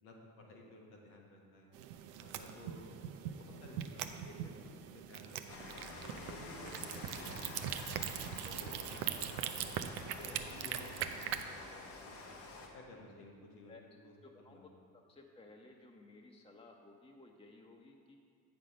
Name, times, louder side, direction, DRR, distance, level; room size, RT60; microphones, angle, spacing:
voice 1, 0.0-1.7 2.2-5.7 6.0-6.9 7.2-8.0 8.3-9.9 10.2-12.3 12.7-14.7, left 1 dB, 85° left, 0 dB, 1.3 m, -55 dB
sound 1, 1.7-11.4, right 10 dB, 85° right, 0.5 m, -42 dB
Rain, 5.5-12.7, left 3 dB, 65° left, 1.3 m, -49 dB
voice 2, 14.2-14.7 15.1-18.2, left 2 dB, 15° left, 1 dB, 0.8 m, -57 dB
8.3 x 5.3 x 5.1 m, 2.2 s
hypercardioid pair, 50°, 44 cm